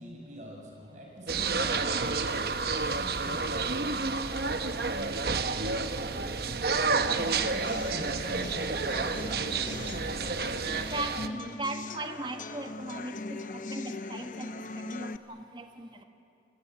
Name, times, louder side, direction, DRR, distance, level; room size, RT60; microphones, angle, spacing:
voice 1, 0.0-2.2 2.8-9.8, equal, 40° right, 1 dB, 6.2 m, -44 dB
sound 1, 1.3-11.3, right 4 dB, 60° right, 1.1 m, -30 dB
sound 2, 7.2-15.2, left 3 dB, 45° left, 0.8 m, -40 dB
voice 2, 10.7-16.0, right 2 dB, 25° right, 6 dB, 1.5 m, -38 dB
29.0 x 21.0 x 9.2 m, 2.6 s
head